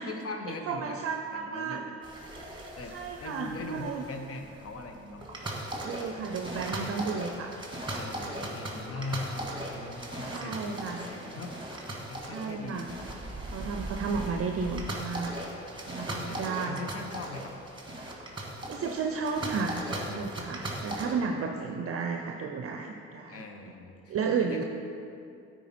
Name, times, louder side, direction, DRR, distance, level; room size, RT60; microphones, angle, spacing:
voice 1, 0.0-1.0 1.3-1.9 2.8-5.3 7.9-11.5 12.1-12.9 14.1-14.7 16.3-17.5 18.6-18.8 20.8-21.4 23.3-24.6, left 3 dB, 45° left, 4 dB, 0.9 m, -41 dB
voice 2, 0.7-1.8 2.5-4.0 5.8-7.6 10.3-11.0 12.3-12.9 13.5-15.3 15.9-16.8 18.7-19.8 20.1-23.4 24.1-24.6, right 5 dB, 45° right, 3 dB, 0.6 m, -33 dB
sound 1, 2.0-21.1, right 1 dB, 15° right, 1.6 m, -38 dB
9.0 x 4.5 x 4.3 m, 2.5 s
hypercardioid pair, 55°, 32 cm